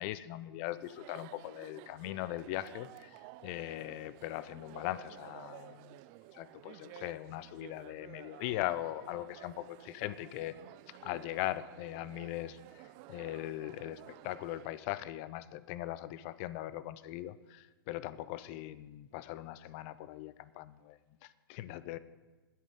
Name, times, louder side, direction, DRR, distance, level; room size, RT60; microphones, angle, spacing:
voice 1, 0.0-6.0 6.3-10.6 10.9-22.0, left 15 dB, 30° left, 16 dB, 0.5 m, -40 dB
Chatter, 0.7-14.8, right 18 dB, 25° right, 0.3 m, -54 dB
22.0 x 8.4 x 3.8 m, 1.2 s
figure-of-eight pair, 115°, 13 cm